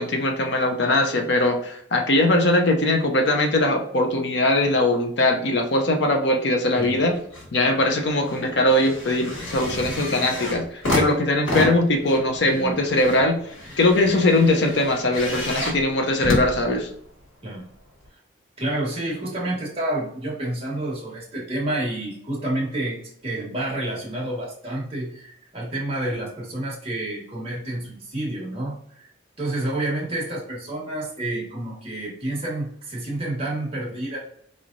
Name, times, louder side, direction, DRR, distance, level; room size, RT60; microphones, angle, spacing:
voice 1, 0.0-7.1 7.5-13.4 13.8-16.9, left 1 dB, 60° left, 3 dB, 0.7 m, -21 dB
sound 1, 6.8-7.5 7.9-17.2 18.0-18.1, left 1 dB, 85° left, 1.5 m, -30 dB
voice 2, 18.6-29.1 29.4-34.2, right 1 dB, 30° right, -5 dB, 1.4 m, -29 dB
4.1 x 3.1 x 2.5 m, 0.67 s
head